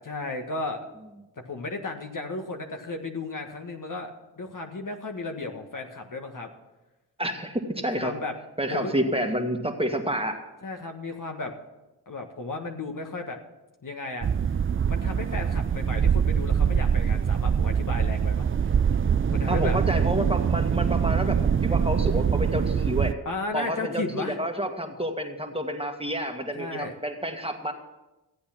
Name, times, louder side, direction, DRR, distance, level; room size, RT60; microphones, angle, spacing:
voice 1, 0.0-0.8 1.5-4.1 4.4-6.5 8.0-8.3 8.7-8.9 10.6-11.5 12.1-13.4 13.8-14.3 14.8-18.5 19.3-19.8 23.2-24.4 26.5-26.9, left 3 dB, 50° left, 4 dB, 1.6 m, -34 dB
voice 2, 7.2-8.1 8.6-10.4 19.5-23.2 23.5-27.7, right 1 dB, 15° right, 4 dB, 1.8 m, -29 dB
sound 1, 14.2-23.1, right 7 dB, 30° right, 0.4 m, -24 dB
15.0 x 8.5 x 5.9 m, 1.0 s
cardioid pair, 45°, 41 cm